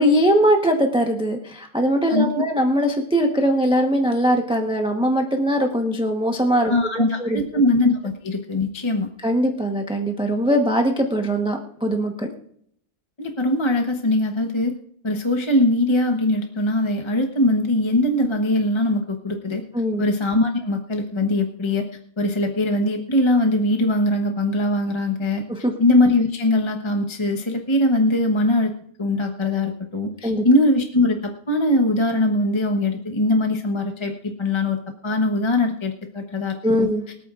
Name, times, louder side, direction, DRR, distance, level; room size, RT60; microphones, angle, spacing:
voice 1, 0.0-7.6 9.2-12.3 19.7-20.0 25.5-25.7 30.2-30.4 36.6-37.0, equal, 5° right, 3 dB, 0.9 m, -21 dB
voice 2, 2.1-2.4 6.6-9.1 13.2-14.7 15.0-19.6 20.0-21.8 22.2-25.4 25.8-28.7 29.0-34.1 34.4-34.8 35.0-36.5 37.1-37.2, left 1 dB, 20° left, 3 dB, 0.9 m, -21 dB
24.0 x 8.7 x 2.5 m, 0.67 s
omnidirectional pair, 1.5 m